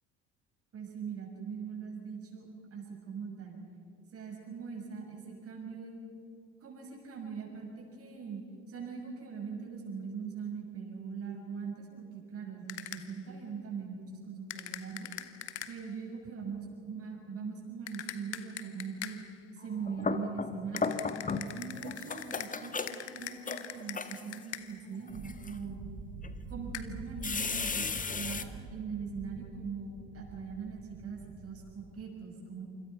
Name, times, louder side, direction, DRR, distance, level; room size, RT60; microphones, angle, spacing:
voice 1, 0.7-3.6 4.1-6.0 6.6-15.1 15.7-19.2 19.5-21.1 21.5-25.9 26.5-32.6, right 5 dB, 45° right, 0 dB, 6.8 m, -41 dB
sound 1, 12.7-13.2 14.5-16.0 17.9-19.4 20.8-24.9 26.7-26.8, left 11 dB, 80° left, 1.3 m, -43 dB
sound 2, 19.7-21.6 21.8-24.4 25.1-25.5 26.2-26.3 27.2-28.4, left 4 dB, 25° left, 1.7 m, -35 dB
sound 3, 25.1-31.9, right 3 dB, 60° right, 5.4 m, -46 dB
28.0 x 26.0 x 5.9 m, 2.5 s
figure-of-eight pair, 60°, 34 cm